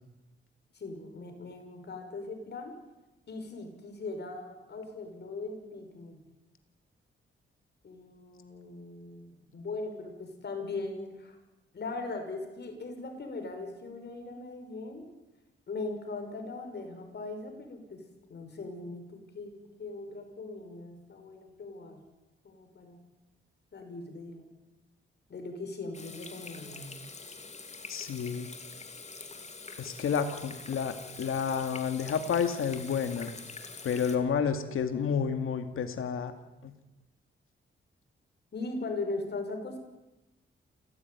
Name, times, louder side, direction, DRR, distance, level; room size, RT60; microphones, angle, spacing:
voice 1, 0.7-2.7 3.3-6.2 7.8-11.4 11.7-15.1 15.7-18.0 18.3-22.0 22.4-23.0 23.7-24.4 25.3-26.9 38.5-39.8, left 3 dB, 55° left, 5 dB, 6.1 m, -39 dB
Water tap faucet / Sink (filling or washing), 25.9-34.2, left 4 dB, 35° left, 2.7 m, -45 dB
voice 2, 27.9-28.5 29.8-33.3 33.8-36.3 36.6-36.7, left 6 dB, 90° left, 7 dB, 2.1 m, -30 dB
28.5 x 16.0 x 9.6 m, 1.0 s
wide cardioid pair, 130°, 21 cm